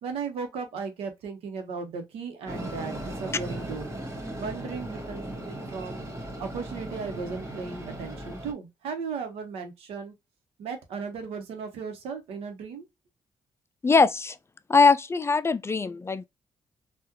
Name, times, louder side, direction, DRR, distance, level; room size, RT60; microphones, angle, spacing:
voice 1, 0.0-3.9 4.3-6.0 6.4-10.1 10.6-12.8, right 5 dB, 85° right, 0.9 m, -36 dB
Train, 2.5-8.5, right 1 dB, 30° right, 1.7 m, -37 dB
voice 2, 13.8-14.4 14.7-16.3, left 4 dB, 25° left, 0.4 m, -21 dB
3.6 x 2.4 x 2.9 m
supercardioid pair, 60°, 10 cm